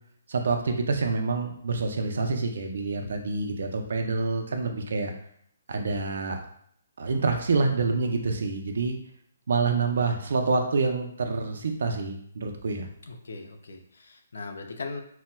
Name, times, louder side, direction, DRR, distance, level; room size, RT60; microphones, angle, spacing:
voice 1, 0.3-5.1 5.7-6.4 7.0-9.0 9.5-12.9, right 4 dB, 60° right, 4 dB, 0.5 m, -27 dB
voice 2, 13.0-15.0, left 3 dB, 75° left, 5 dB, 0.5 m, -39 dB
4.1 x 2.0 x 2.2 m, 0.67 s
hypercardioid pair, 175°, 0 cm